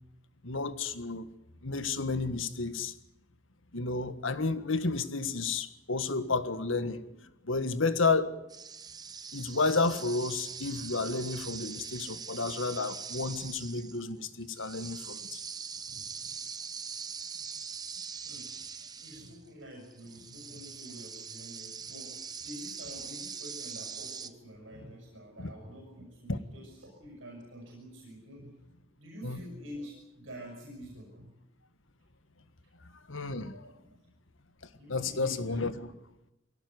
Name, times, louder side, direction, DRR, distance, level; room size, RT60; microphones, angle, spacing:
voice 1, 0.4-1.3 1.6-2.9 3.7-8.4 9.3-15.4 25.4-25.5 26.3-26.4 29.2-29.4 33.1-33.7 34.9-35.9, left 3 dB, 80° left, 1.7 m, -31 dB
sound 1, 8.5-19.5 19.8-24.3, right 6 dB, 20° right, 1.0 m, -42 dB
voice 2, 15.9-16.4 18.3-18.5 18.9-22.1 22.4-28.5 28.9-31.3 33.6-34.0 34.8-35.9, equal, 75° right, 6.2 m, -48 dB
22.5 x 17.0 x 9.7 m
head